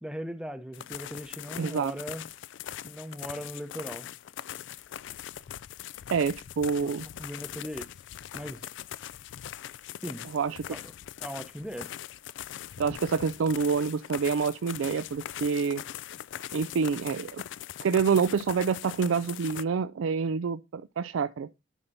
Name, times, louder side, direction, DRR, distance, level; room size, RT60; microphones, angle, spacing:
voice 1, 0.0-2.2 2.8-4.1 6.8-6.9 7.2-7.9 8.3-8.7 10.0-10.3 10.7-10.9 11.2-11.9, equal, 5° right, 0.7 m, -38 dB
sound 1, 0.7-19.6, left 11 dB, 65° left, 0.3 m, -41 dB
voice 2, 1.6-1.9 6.1-7.1 10.3-10.8 12.8-15.8 16.5-17.4 17.8-21.5, right 5 dB, 90° right, 0.4 m, -27 dB
11.0 x 5.7 x 2.6 m
head